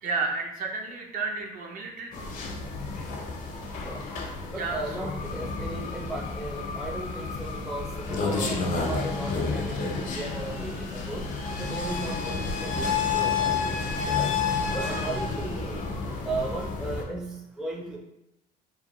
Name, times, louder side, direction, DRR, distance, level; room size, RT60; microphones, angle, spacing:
voice 1, 0.0-2.3 4.5-5.1 14.0-14.2 14.7-15.1, right 4 dB, 55° right, 2 dB, 0.5 m, -33 dB
sound 1, 2.1-17.0, left 4 dB, 50° left, 0.5 m, -30 dB
voice 2, 4.5-11.2 11.6-14.3 14.7-15.9 16.2-18.0, right 2 dB, 5° right, 0 dB, 0.4 m, -36 dB
2.6 x 2.1 x 2.9 m, 0.86 s
cardioid pair, 110°, 17 cm